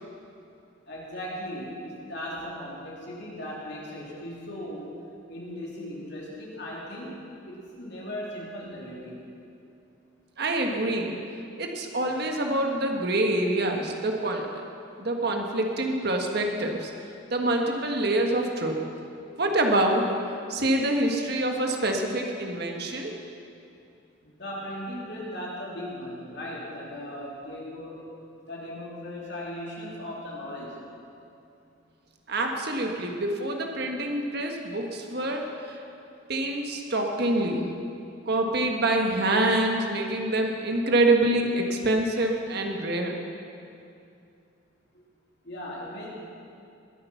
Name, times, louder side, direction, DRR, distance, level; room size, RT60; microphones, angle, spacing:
voice 1, 0.9-4.9 5.3-9.2 24.2-28.1 28.4-30.8 45.4-46.1, equal, 55° left, -5 dB, 3.4 m, -37 dB
voice 2, 10.4-11.2 11.6-14.6 15.0-16.9 17.3-18.8 19.4-20.1 20.5-23.1 32.3-35.8 36.3-37.7 38.3-43.2, right 1 dB, 50° right, 2 dB, 1.5 m, -26 dB
21.0 x 8.7 x 5.8 m, 2.6 s
head